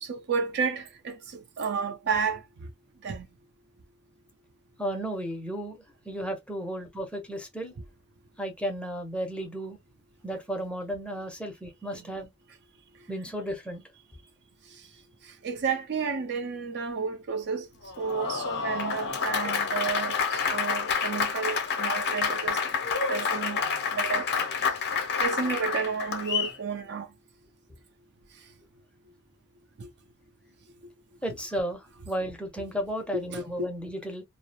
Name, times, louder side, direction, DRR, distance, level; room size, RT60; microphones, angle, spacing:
voice 1, 0.0-2.4 3.0-3.3 11.9-12.0 15.4-17.7 18.0-22.6 23.1-23.6 23.9-24.3 25.2-27.1 29.8-29.9 33.1-33.4, right 5 dB, 55° right, 0.5 m, -31 dB
voice 2, 4.8-5.8 6.1-7.7 8.4-9.8 10.2-12.3 13.1-13.8 31.2-34.2, equal, 5° left, 0.6 m, -33 dB
Applause, 17.8-26.6, left 6 dB, 50° left, 0.6 m, -28 dB
2.3 x 2.0 x 2.7 m
head